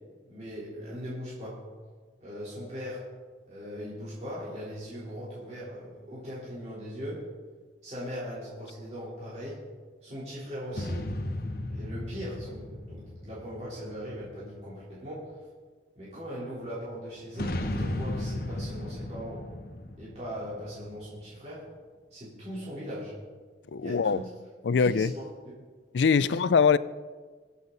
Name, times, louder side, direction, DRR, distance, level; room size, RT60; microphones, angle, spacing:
voice 1, 0.3-1.6 2.2-3.1 3.5-7.3 7.8-9.7 10.0-11.1 11.7-15.3 16.0-19.5 20.0-21.7 22.1-23.1 23.8-24.2 24.7-25.7 26.2-26.4, equal, 40° right, -9 dB, 3.8 m, -39 dB
sound 1, 10.7-14.4 17.3-21.1, left 1 dB, 55° left, 1.1 m, -35 dB
voice 2, 23.7-24.2 24.6-25.1 25.9-26.8, left 5 dB, 85° left, 17 dB, 0.4 m, -22 dB
22.0 x 8.2 x 4.0 m, 1.5 s
head